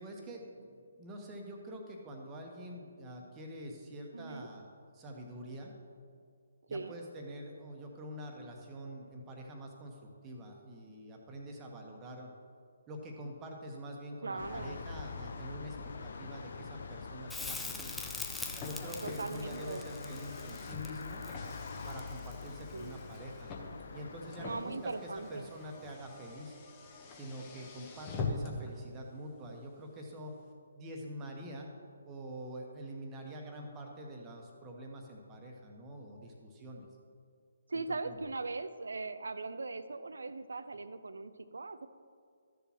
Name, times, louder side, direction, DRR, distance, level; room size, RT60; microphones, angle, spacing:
voice 1, 0.0-4.6 4.9-5.8 6.7-12.3 12.9-15.8 16.0-18.0 18.6-21.2 21.8-23.5 23.9-26.6 27.1-30.3 30.7-31.7 32.0-36.9 38.0-38.2, equal, 20° right, 1 dB, 1.2 m, -46 dB
voice 2, 4.1-4.5 6.7-7.0 14.2-14.8 19.0-19.9 22.7-23.0 24.4-25.5 37.7-41.9, right 3 dB, 70° right, 13 dB, 0.5 m, -40 dB
sound 1, 14.4-24.6, left 4 dB, 55° left, 0.7 m, -45 dB
Crackle, 17.3-22.4 25.2-25.3, left 3 dB, 5° left, 0.4 m, -43 dB
Car, 18.5-28.7, left 4 dB, 25° left, 1.1 m, -44 dB
13.5 x 6.9 x 3.0 m, 2.2 s
figure-of-eight pair, 140°, 0 cm